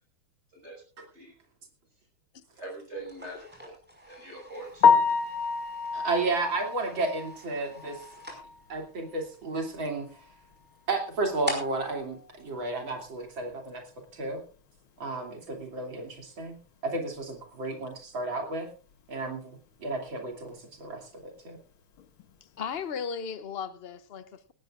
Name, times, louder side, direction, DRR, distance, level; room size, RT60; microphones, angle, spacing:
voice 1, 2.6-3.8 4.0-4.9, right 2 dB, 30° right, 6.3 m, -42 dB
sound 1, 3.0-13.4, equal, 5° right, 5.3 m, -44 dB
Piano, 4.8-8.8 9.1-9.3 9.8-9.9 10.2-10.3 13.4-13.5 22.0-22.2, left 6 dB, 90° left, 2.0 m, -27 dB
voice 2, 5.9-8.0 8.7-10.1 10.9-13.8 14.1-14.4 15.0-16.6 16.8-18.7 19.1-21.6, right 3 dB, 70° right, 3.6 m, -32 dB
voice 3, 22.6-24.5, left 6 dB, 65° left, 0.6 m, -36 dB
18.0 x 17.5 x 2.5 m
omnidirectional pair, 2.2 m